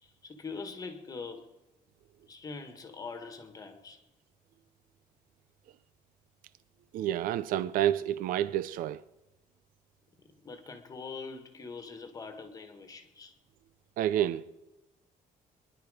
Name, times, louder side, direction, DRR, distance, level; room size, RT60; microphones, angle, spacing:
voice 1, 0.0-1.5 2.3-4.0 10.4-13.3, left 4 dB, 25° left, 1.7 m, -43 dB
voice 2, 6.9-9.0 14.0-14.4, right 11 dB, 75° right, 0.5 m, -29 dB
24.5 x 11.0 x 5.0 m
cardioid pair, 170°, 14 cm